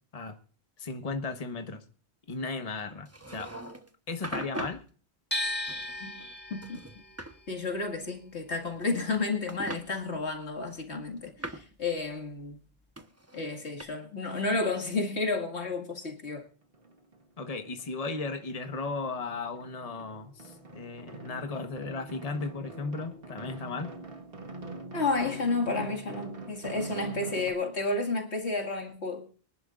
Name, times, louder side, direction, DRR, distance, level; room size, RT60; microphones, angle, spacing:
voice 1, 0.8-1.8 2.3-3.6 4.1-4.8 17.4-23.9, left 3 dB, 35° left, 1.3 m, -36 dB
sound 1, 3.1-3.9 4.2-4.8 5.7-6.3 6.6-7.3 8.5-9.2 9.5-9.8 10.7-11.7 13.0-13.8, right 1 dB, 15° right, 1.0 m, -40 dB
sound 2, 5.3-11.3 11.6-12.9, left 1 dB, 10° left, 2.0 m, -38 dB
voice 2, 6.5-6.8 7.5-12.6 13.3-16.4 24.9-29.3, left 3 dB, 85° left, 2.4 m, -31 dB
sound 3, 16.3-16.4 16.7-17.9 18.2-27.5, right 3 dB, 60° right, 1.8 m, -43 dB
24.5 x 11.0 x 2.5 m
omnidirectional pair, 1.1 m